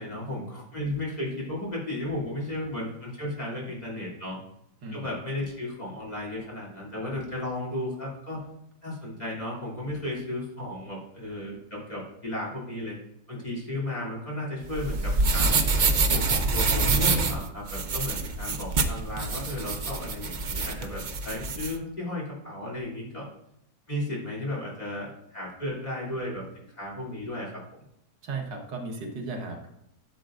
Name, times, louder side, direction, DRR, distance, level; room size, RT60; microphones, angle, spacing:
voice 1, 0.0-4.4 4.9-8.4 8.8-13.0 13.3-15.6 16.1-23.3 23.9-27.6, left 1 dB, 25° left, -4 dB, 3.1 m, -34 dB
sound 1, 14.6-21.7, right 3 dB, 70° right, 0.4 m, -26 dB
voice 2, 28.2-29.7, right 3 dB, 85° right, 2 dB, 2.0 m, -35 dB
12.5 x 7.5 x 2.5 m, 0.82 s
omnidirectional pair, 1.8 m